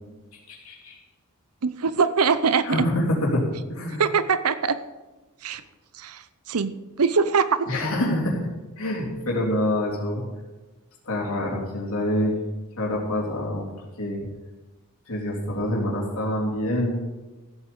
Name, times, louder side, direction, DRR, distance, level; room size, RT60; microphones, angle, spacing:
voice 1, 0.5-0.9 2.6-4.0 7.7-8.4 8.8-10.2 11.1-12.3 12.8-13.7 14.0-14.3 15.1-17.0, left 1 dB, 70° left, -3 dB, 3.5 m, -26 dB
voice 2, 1.6-2.9 4.0-4.8 5.4-5.6 5.9-7.7, right 5 dB, 85° right, 14 dB, 0.7 m, -23 dB
14.5 x 8.3 x 5.4 m, 1.2 s
head